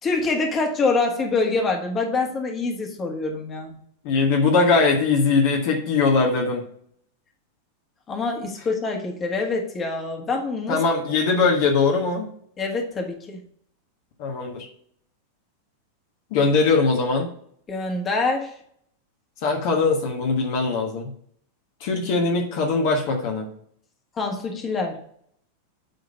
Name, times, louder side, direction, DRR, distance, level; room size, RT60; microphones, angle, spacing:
voice 1, 0.0-3.8 8.1-10.8 12.6-13.4 17.7-18.5 24.1-25.0, left 3 dB, 25° left, 2 dB, 1.7 m, -25 dB
voice 2, 4.0-6.6 10.7-12.3 14.2-14.7 16.3-17.3 19.4-21.1 21.8-23.5, left 4 dB, 50° left, 0 dB, 1.4 m, -21 dB
9.2 x 3.8 x 5.3 m, 0.63 s
figure-of-eight pair, 90°, 0 cm